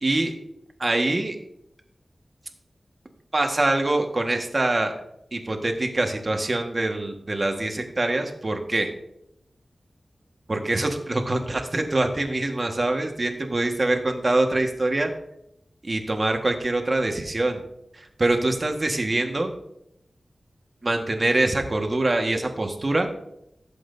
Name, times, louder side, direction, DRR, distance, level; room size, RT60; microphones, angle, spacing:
voice 1, 0.0-0.3 0.8-1.4 3.3-4.9 5.3-8.9 10.5-15.1 15.8-17.6 17.9-19.5 20.8-23.1, right 2 dB, 45° right, 4 dB, 1.6 m, -24 dB
15.5 x 7.7 x 2.7 m, 0.79 s
wide cardioid pair, 55°, 0 cm